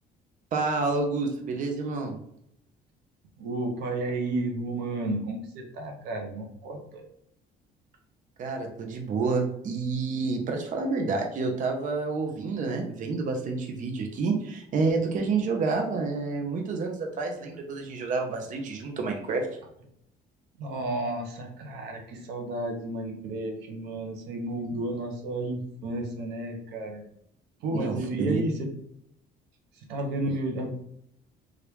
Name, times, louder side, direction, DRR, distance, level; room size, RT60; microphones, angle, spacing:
voice 1, 0.5-2.1 8.4-19.5 27.7-28.4, right 4 dB, 50° right, 3 dB, 0.6 m, -29 dB
voice 2, 3.4-7.0 20.6-27.0 27.6-28.7 29.7-30.7, right 2 dB, 90° right, 2 dB, 0.8 m, -32 dB
3.0 x 2.5 x 3.3 m, 0.73 s
cardioid pair, 110°, 17 cm